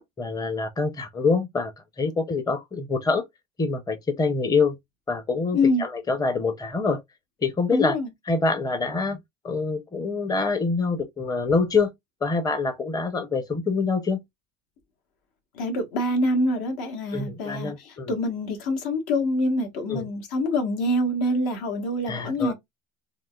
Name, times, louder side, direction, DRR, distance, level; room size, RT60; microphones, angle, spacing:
voice 1, 0.2-1.7 2.0-3.2 3.6-4.8 5.1-7.0 7.4-8.0 8.3-9.2 9.4-11.9 12.2-14.2 17.1-18.1 19.9-20.1 22.1-22.5, left 4 dB, 10° left, 0.6 m, -25 dB
voice 2, 5.5-5.8 7.7-8.1 15.5-22.5, left 1 dB, 65° left, 1.4 m, -25 dB
3.7 x 2.5 x 2.3 m
supercardioid pair, 80°, 40 cm